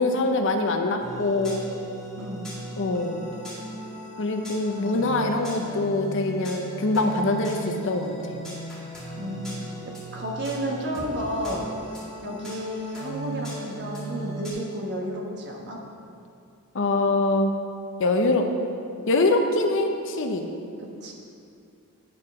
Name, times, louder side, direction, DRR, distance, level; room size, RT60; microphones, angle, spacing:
voice 1, 0.0-1.6 2.8-3.2 4.2-8.4 16.7-17.5 18.0-18.5 19.1-20.4, left 2 dB, 60° left, 5 dB, 0.7 m, -24 dB
sound 1, 1.0-14.5, right 1 dB, ahead, 2.1 m, -37 dB
voice 2, 2.2-2.5 4.7-5.3 5.5-5.7 9.1-15.8 20.8-21.1, equal, 50° right, -1 dB, 1.2 m, -32 dB
9.8 x 4.4 x 5.3 m, 2.4 s
head